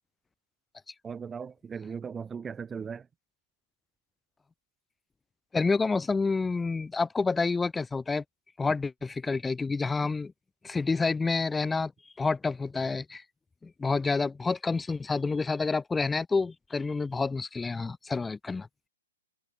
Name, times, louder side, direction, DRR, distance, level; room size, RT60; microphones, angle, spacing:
voice 1, 1.0-3.1, right 6 dB, 15° right, 6.5 m, -38 dB
voice 2, 5.5-8.2 8.6-10.3 10.6-11.9 12.2-13.2 13.6-18.7, left 4 dB, 10° left, 2.9 m, -28 dB
figure-of-eight pair, 125°, 0 cm